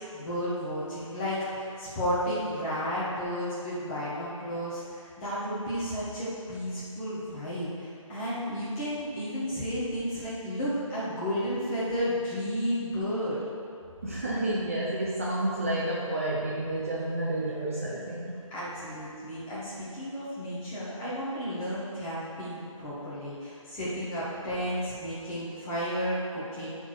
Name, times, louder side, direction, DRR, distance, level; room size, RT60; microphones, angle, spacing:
voice 1, 0.0-13.4 18.5-26.7, equal, 10° left, -10 dB, 1.5 m, -32 dB
voice 2, 14.0-18.4, right 1 dB, 25° right, -5 dB, 0.7 m, -30 dB
13.0 x 4.5 x 4.7 m, 2.4 s
figure-of-eight pair, 170°, 17 cm